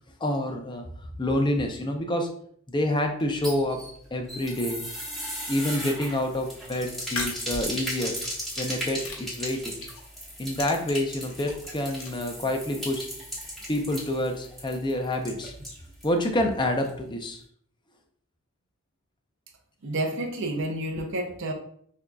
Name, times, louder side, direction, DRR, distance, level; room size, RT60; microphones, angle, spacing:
voice 1, 0.2-0.9 1.2-2.3 2.7-3.8 4.1-4.8 5.5-8.2 8.6-9.8 10.4-13.1 13.7-15.5 16.0-17.4, left 1 dB, 20° left, 4 dB, 0.5 m, -27 dB
sound 1, 3.2-16.2 16.4-16.5 16.8-16.9, equal, ahead, 1.4 m, -37 dB
sound 2, 6.2-6.5 7.0-8.6 9.0-10.0 10.4-12.1, left 3 dB, 85° left, 1.1 m, -37 dB
voice 2, 19.8-21.5, right 1 dB, 60° right, 4 dB, 0.6 m, -30 dB
6.2 x 2.7 x 2.3 m, 0.62 s
head